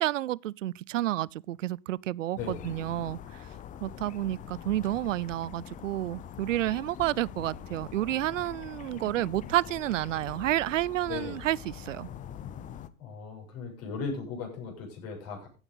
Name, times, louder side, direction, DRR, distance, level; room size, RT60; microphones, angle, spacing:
voice 1, 0.0-3.5 3.8-12.1, right 14 dB, 65° right, 0.6 m, -30 dB
sound 1, 2.4-12.9, left 9 dB, 20° left, 0.7 m, -44 dB
voice 2, 13.0-15.5, left 5 dB, 35° left, 7.6 m, -37 dB
15.5 x 8.8 x 4.0 m
figure-of-eight pair, 105°, 41 cm